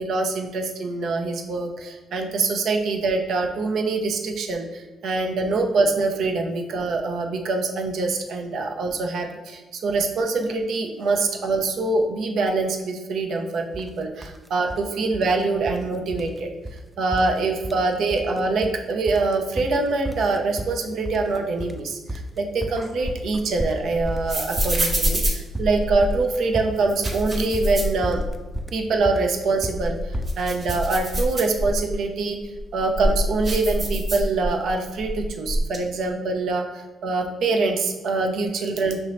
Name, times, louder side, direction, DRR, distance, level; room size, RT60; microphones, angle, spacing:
voice 1, 0.0-16.5 17.0-28.2 28.7-32.4 32.7-39.0, right 3 dB, 70° right, 3 dB, 0.6 m, -24 dB
sound 1, 13.7-13.9 14.2-14.8 15.1-15.9 16.1-16.4 16.6-16.8 17.1-17.9 18.1-18.8 19.1-31.9, right 1 dB, 5° right, 0.3 m, -33 dB
sound 2, 22.8-26.2 26.8-28.6 29.0-29.1 29.6-32.0 32.5-34.7 35.0-35.8, equal, 45° right, 1.0 m, -26 dB
5.9 x 2.7 x 3.2 m, 1.2 s
cardioid pair, 90°, 0 cm